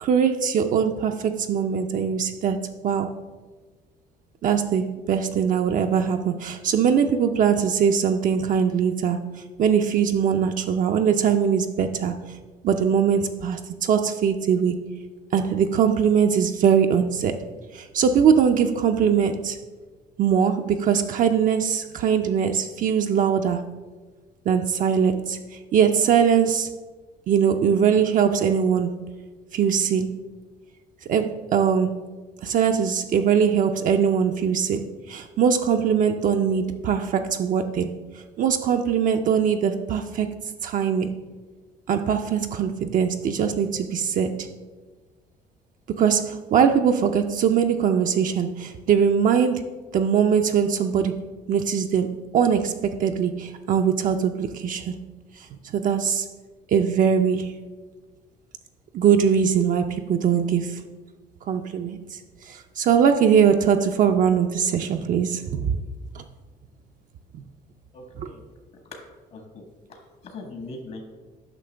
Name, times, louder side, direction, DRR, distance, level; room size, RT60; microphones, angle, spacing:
voice 1, 0.0-3.1 4.4-9.2 9.6-12.2 12.6-14.8 15.3-17.4 17.7-19.6 20.2-23.7 24.5-26.7 27.3-29.0 29.5-30.2 31.1-32.0 32.4-38.0 38.4-40.4 40.6-41.2 41.9-44.5 46.0-51.2 51.5-54.9 55.4-56.3 56.7-57.6 58.9-60.8 61.5-65.8 66.1-66.2 67.3-67.4, right 7 dB, 50° right, 5 dB, 0.5 m, -21 dB
voice 2, 67.9-68.4 68.9-69.0 69.3-69.6 69.9-71.0, left 2 dB, 60° left, 2 dB, 1.3 m, -40 dB
9.0 x 5.7 x 3.3 m, 1.3 s
cardioid pair, 110°, 17 cm